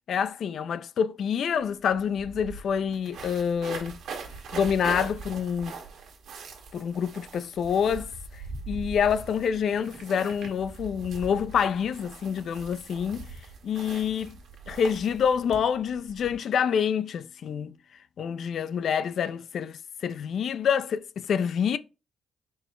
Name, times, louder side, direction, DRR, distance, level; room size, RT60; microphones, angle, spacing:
voice 1, 0.1-4.0 4.5-5.7 6.7-13.3 13.6-14.4 14.7-17.7 18.2-21.8, left 7 dB, 60° left, 0.3 m, -27 dB
sound 1, 1.6-1.7 1.9-16.3, right 4 dB, 75° right, 1.2 m, -41 dB
4.3 x 2.1 x 4.4 m
cardioid pair, 90°, 0 cm